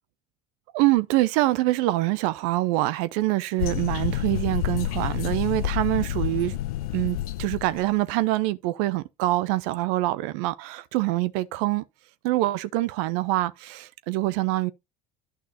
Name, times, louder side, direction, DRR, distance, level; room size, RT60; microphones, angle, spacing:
voice 1, 0.7-6.6 6.9-11.8 12.2-14.7, right 18 dB, 60° right, 0.6 m, -25 dB
sound 1, 3.6-7.9, left 14 dB, 70° left, 0.6 m, -29 dB
11.5 x 6.0 x 2.8 m
figure-of-eight pair, 65°, 20 cm